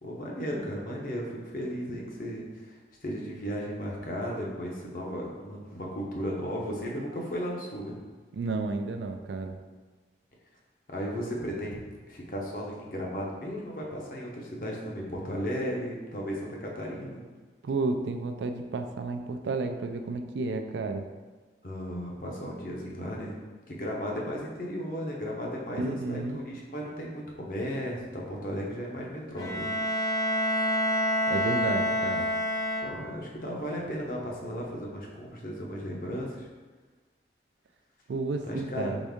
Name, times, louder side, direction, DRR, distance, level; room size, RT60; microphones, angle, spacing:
voice 1, 0.0-7.9 10.9-11.8 12.1-17.2 21.6-23.3 23.7-29.7 32.8-36.5 38.4-39.0, equal, 50° left, -2 dB, 0.8 m, -35 dB
voice 2, 8.3-9.6 17.6-21.1 25.7-26.4 31.3-32.3 38.1-39.0, right 3 dB, 85° right, 6 dB, 0.4 m, -31 dB
Bowed string instrument, 29.4-33.3, equal, 20° left, 0.4 m, -28 dB
4.0 x 3.5 x 3.5 m, 1.4 s
head